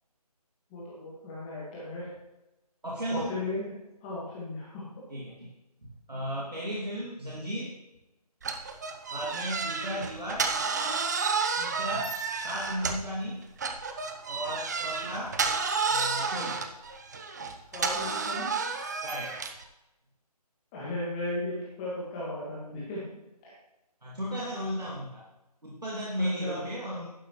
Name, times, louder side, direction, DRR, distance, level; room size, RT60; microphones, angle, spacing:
voice 1, 0.7-2.1 3.1-3.7 4.0-4.8 17.7-18.5 20.7-23.0 23.4-23.5 26.2-26.6, left 2 dB, 15° left, -7 dB, 1.6 m, -36 dB
voice 2, 2.8-3.4 5.1-5.5 5.8-7.8 9.1-10.5 11.6-13.4 14.3-15.4 15.8-16.6 19.0-19.4 24.0-25.3 25.6-27.1, equal, 90° right, -4 dB, 2.4 m, -35 dB
sound 1, 8.4-13.2 13.6-19.6, right 5 dB, 25° right, 0.6 m, -31 dB
11.0 x 10.0 x 3.1 m, 0.99 s
figure-of-eight pair, 155°, 20 cm